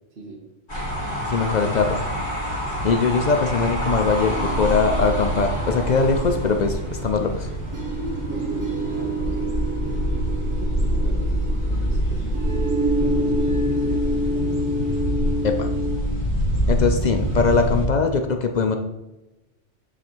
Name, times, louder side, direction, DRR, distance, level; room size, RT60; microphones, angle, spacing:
voice 1, 0.1-0.4 8.3-9.7 10.0-14.6, right 2 dB, 60° right, 0 dB, 1.2 m, -40 dB
sound 1, 0.7-17.9, equal, 40° left, 2.2 m, -26 dB
voice 2, 1.2-2.0 2.8-7.5 15.4-15.7 16.7-18.8, left 4 dB, 60° left, 5 dB, 0.4 m, -21 dB
sound 2, 4.3-16.0, right 1 dB, 20° right, 0.6 m, -28 dB
8.6 x 3.3 x 4.4 m, 1.0 s
omnidirectional pair, 1.2 m